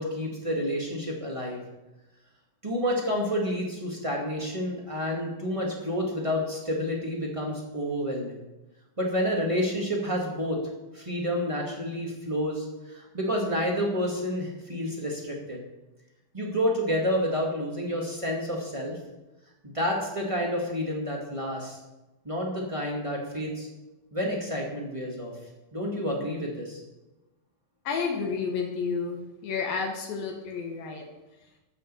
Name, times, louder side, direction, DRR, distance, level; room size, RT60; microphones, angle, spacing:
voice 1, 0.0-1.6 2.6-8.4 9.0-10.6 10.9-15.6 16.3-18.9 19.6-21.8 22.2-23.7 24.1-25.3 25.7-26.8, equal, 20° right, -2 dB, 0.9 m, -29 dB
voice 2, 27.8-31.0, left 5 dB, 70° left, 1 dB, 3.2 m, -31 dB
15.0 x 6.5 x 6.9 m, 1.0 s
omnidirectional pair, 4.3 m